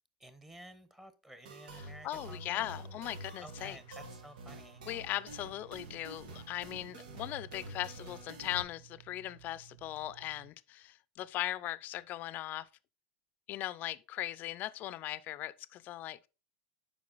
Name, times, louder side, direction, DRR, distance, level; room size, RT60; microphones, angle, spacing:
voice 1, 0.2-3.0 3.4-4.8, right 1 dB, 10° right, 1.1 m, -53 dB
sound 1, 1.5-8.6, right 2 dB, 80° right, 1.4 m, -48 dB
voice 2, 1.7-3.8 4.8-12.7 13.5-16.3, left 14 dB, 45° left, 0.5 m, -39 dB
sound 2, 3.5-10.5, right 18 dB, 55° right, 0.6 m, -58 dB
7.6 x 5.3 x 4.0 m
supercardioid pair, 115°, 4 cm